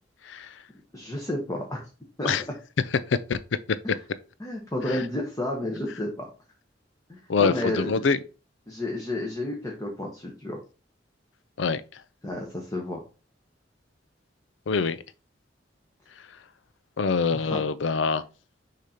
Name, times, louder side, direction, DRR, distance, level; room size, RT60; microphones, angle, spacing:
voice 1, 0.9-1.9 2.2-2.3 3.8-4.0 4.4-6.3 7.1-8.0 8.7-10.6 12.2-13.0 17.3-17.6, left 1 dB, 20° left, 1.1 m, -31 dB
voice 2, 7.3-8.2 11.6-11.8 14.7-15.0 17.0-18.2, left 5 dB, 80° left, 0.5 m, -24 dB
6.5 x 2.8 x 5.0 m
head